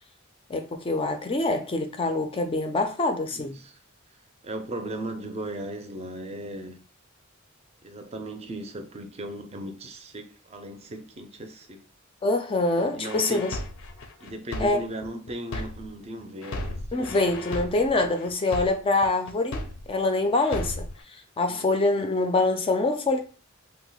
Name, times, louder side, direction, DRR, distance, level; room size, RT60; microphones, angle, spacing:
voice 1, 0.5-3.6 12.2-13.6 14.6-14.8 16.9-20.9 21.1-23.2, left 2 dB, 25° left, 0.4 m, -25 dB
voice 2, 3.3-3.8 4.4-6.8 7.8-11.8 12.9-13.6 14.2-17.2 21.5-21.7, right 1 dB, 30° right, 0.5 m, -37 dB
sound 1, 13.0-16.0 16.4-20.0 20.4-21.0, left 1 dB, 85° left, 0.5 m, -35 dB
2.8 x 2.1 x 3.9 m
head